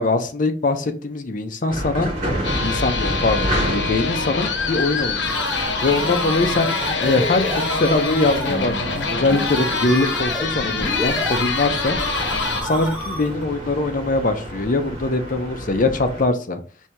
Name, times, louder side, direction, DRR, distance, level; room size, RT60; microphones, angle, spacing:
voice 1, 0.0-2.1 2.6-5.4 5.8-12.0 12.6-16.6, left 2 dB, 45° left, 7 dB, 0.5 m, -22 dB
sound 1, 1.7-16.3, equal, 45° right, 1.4 m, -31 dB
sound 2, 2.4-12.6, left 4 dB, 75° left, 0.8 m, -25 dB
sound 3, 5.2-13.5, equal, 10° right, 1.3 m, -30 dB
4.4 x 2.7 x 3.3 m, 0.41 s
head